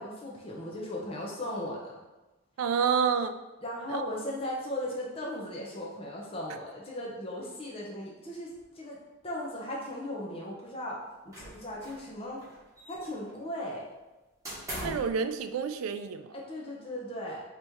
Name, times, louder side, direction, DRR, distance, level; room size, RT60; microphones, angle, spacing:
voice 1, 0.0-1.9 3.6-9.0 9.2-11.0 11.2-12.4 12.9-13.8 16.3-17.4, left 1 dB, 30° left, -4 dB, 0.7 m, -37 dB
voice 2, 2.6-3.4 3.9-4.0 14.8-16.4, right 6 dB, 80° right, 9 dB, 0.3 m, -28 dB
sound 1, 11.3-12.1 12.4-13.3 14.4-15.2, equal, 15° right, 1.4 m, -40 dB
4.1 x 3.0 x 3.4 m, 1.1 s
head